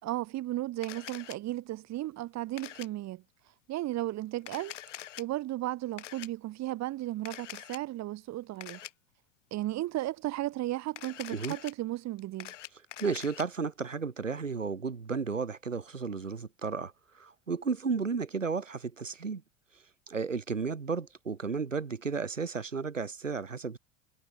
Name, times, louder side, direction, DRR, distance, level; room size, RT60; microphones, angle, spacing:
voice 1, 0.0-3.2 3.7-4.7 5.2-8.8 9.5-12.5, right 15 dB, 45° right, 3.8 m, -35 dB
Camera, 0.8-1.4 2.6-2.9 4.4-5.2 6.0-6.3 7.2-7.8 8.6-8.9 10.9-11.7 12.2-13.4, left 12 dB, 75° left, 4.5 m, -44 dB
voice 2, 13.0-19.4 19.7-23.8, right 5 dB, 90° right, 3.2 m, -33 dB
figure-of-eight pair, 75°, 37 cm